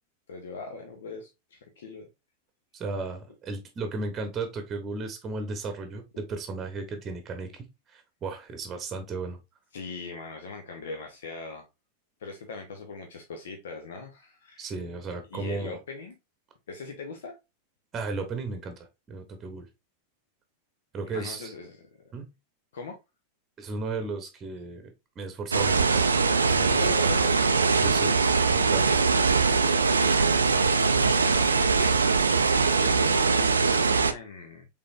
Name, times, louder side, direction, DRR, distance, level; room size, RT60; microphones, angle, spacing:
voice 1, 0.3-2.1 9.7-11.7 12.2-14.6 15.3-16.1 16.7-17.4 21.1-21.7 22.7-23.0 26.6-27.4 31.0-31.9 32.4-34.7, left 4 dB, 60° left, 0.7 m, -40 dB
voice 2, 2.7-9.4 14.6-15.8 17.9-19.7 20.9-21.5 22.1-22.3 23.6-26.1 26.5-27.1 27.8-28.2 28.5-29.0, right 3 dB, 25° right, 0.9 m, -35 dB
sound 1, 25.5-34.1, right 4 dB, 75° right, 0.4 m, -22 dB
5.0 x 3.4 x 2.5 m
figure-of-eight pair, 90°, 0 cm